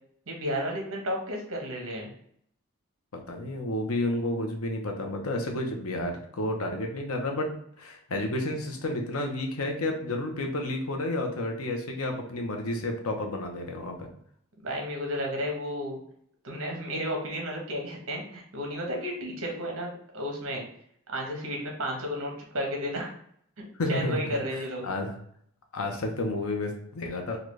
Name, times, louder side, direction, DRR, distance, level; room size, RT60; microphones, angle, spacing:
voice 1, 0.3-2.1 14.6-16.0 16.4-20.7 21.1-23.1 23.6-24.9, equal, 70° right, 1 dB, 1.0 m, -33 dB
voice 2, 3.1-7.5 7.8-14.1 23.7-25.2 25.7-27.4, left 1 dB, 80° left, 3 dB, 0.7 m, -31 dB
3.9 x 2.3 x 3.1 m, 0.66 s
head